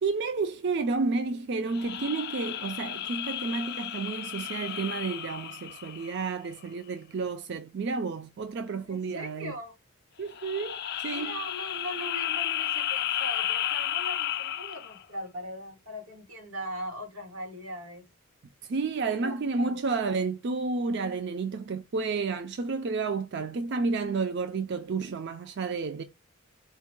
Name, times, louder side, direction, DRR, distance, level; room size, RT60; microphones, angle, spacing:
voice 1, 0.0-9.5 10.2-11.4 18.7-26.0, right 4 dB, 50° right, 0.4 m, -31 dB
sound 1, 1.7-6.5 10.3-15.0, left 11 dB, 50° left, 0.3 m, -33 dB
voice 2, 8.8-9.8 11.1-18.0 19.0-19.8, equal, 90° right, 1.9 m, -40 dB
4.6 x 2.2 x 4.4 m
head